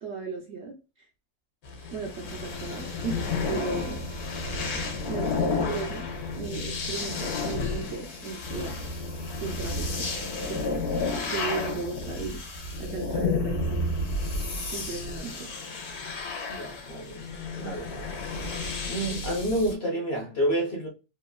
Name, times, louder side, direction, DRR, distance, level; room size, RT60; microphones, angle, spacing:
voice 1, 0.0-0.8 1.9-4.0 5.1-6.1 6.4-8.8 9.4-10.1 10.5-10.8 11.2-12.4 12.8-13.7 14.7-15.5, right 5 dB, 65° right, 0.7 m, -36 dB
sound 1, 1.6-19.7, left 3 dB, 85° left, 1.2 m, -31 dB
voice 2, 16.5-18.1 18.9-20.9, right 1 dB, 50° left, 0.8 m, -29 dB
2.9 x 2.4 x 2.3 m
omnidirectional pair, 1.6 m